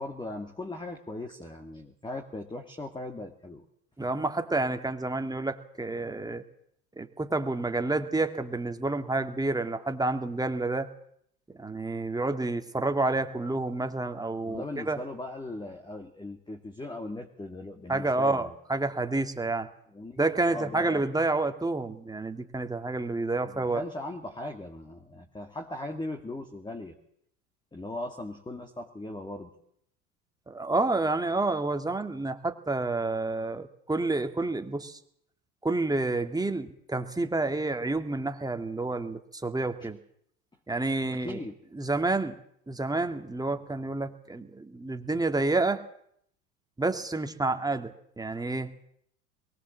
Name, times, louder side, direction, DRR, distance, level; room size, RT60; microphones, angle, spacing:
voice 1, 0.0-3.6 14.4-18.5 19.9-20.2 20.5-21.0 23.4-26.9 27.7-29.5 39.8-39.9 41.1-41.9, left 2 dB, 10° left, 3 dB, 2.6 m, -39 dB
voice 2, 4.0-6.4 7.0-10.9 11.6-15.0 17.9-19.7 20.2-23.9 30.5-35.0 35.6-40.0 40.7-41.4 41.7-42.4 42.7-45.9 46.8-48.7, right 2 dB, 10° right, 6 dB, 2.2 m, -29 dB
22.5 x 19.5 x 7.5 m, 0.68 s
figure-of-eight pair, 75°, 41 cm